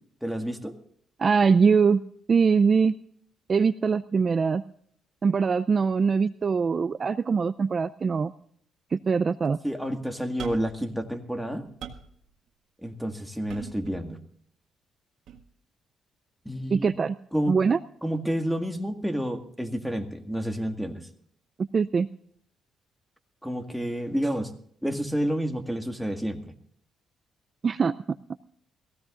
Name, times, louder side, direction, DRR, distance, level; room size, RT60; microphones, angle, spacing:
voice 1, 0.2-0.8 9.6-11.7 12.8-14.2 16.5-16.9 17.3-17.5 18.0-21.1 23.4-24.5 24.8-26.5, equal, ahead, 5 dB, 1.9 m, -29 dB
voice 2, 1.2-2.0 2.3-2.9 3.5-4.6 5.2-8.3 8.9-9.6 16.7-17.2 17.5-17.8 21.7-22.1 27.6-27.9, right 5 dB, 40° right, 14 dB, 0.4 m, -22 dB
sound 1, 10.4-10.8 11.3-12.2 13.5-14.1 15.3-15.4, right 8 dB, 75° right, 1.7 m, -40 dB
21.5 x 16.0 x 2.5 m, 0.64 s
cardioid pair, 90°, 0 cm